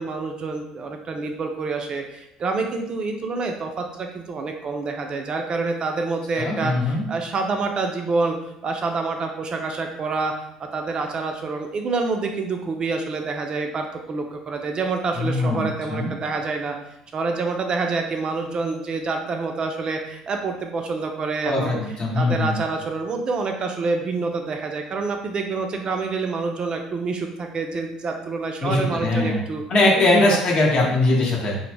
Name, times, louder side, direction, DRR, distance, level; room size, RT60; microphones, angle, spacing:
voice 1, 0.0-8.4 8.6-10.3 10.6-16.8 17.1-21.8 22.1-29.6 29.9-30.4, right 3 dB, 40° right, 3 dB, 0.3 m, -27 dB
voice 2, 6.4-7.1 15.1-16.1 21.4-22.5 28.6-29.4 29.7-31.6, left 2 dB, 45° left, -2 dB, 0.8 m, -21 dB
2.0 x 2.0 x 3.2 m, 0.83 s
hypercardioid pair, 65°, 2 cm